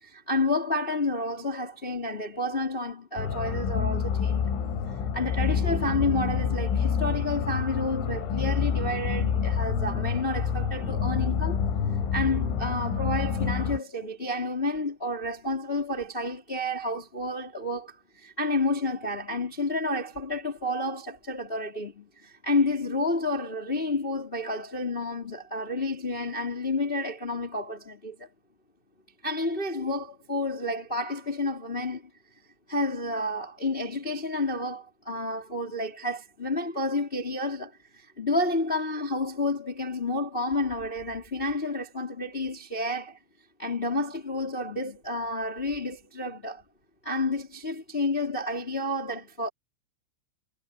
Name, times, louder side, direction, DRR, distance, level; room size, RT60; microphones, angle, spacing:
voice 1, 0.0-4.5 5.1-11.6 12.1-17.9 18.2-28.1 29.2-32.0 32.7-37.7 38.2-43.2 43.6-46.6 47.0-49.5, left 2 dB, 15° left, 2.6 m, -30 dB
sound 1, 3.2-13.8, left 7 dB, 75° left, 6.5 m, -28 dB
omnidirectional pair, 6.0 m